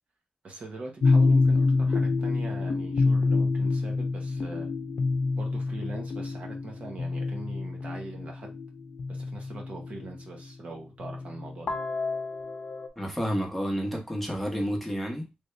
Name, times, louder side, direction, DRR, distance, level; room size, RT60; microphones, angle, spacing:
voice 1, 0.4-4.7 5.4-8.6 9.1-11.8, right 3 dB, 55° right, 1.0 m, -42 dB
sound 1, 1.0-10.2 11.0-12.9, left 3 dB, 65° left, 0.6 m, -27 dB
voice 2, 13.0-15.3, equal, 5° left, 1.1 m, -30 dB
3.4 x 2.6 x 3.2 m
cardioid pair, 100°, 3 cm